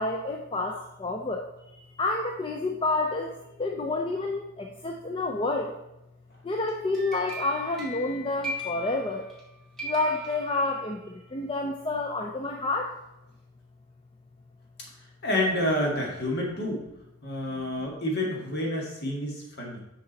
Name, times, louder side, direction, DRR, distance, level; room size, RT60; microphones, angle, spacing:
voice 1, 0.0-5.8 6.4-9.3 9.8-13.0, left 2 dB, 25° left, 2 dB, 0.4 m, -29 dB
sound 1, 6.7-9.5 9.8-11.1, right 1 dB, ahead, 1.5 m, -38 dB
voice 2, 15.2-16.8 17.2-19.8, left 1 dB, 50° left, -1 dB, 1.7 m, -28 dB
6.6 x 5.3 x 4.0 m, 0.88 s
head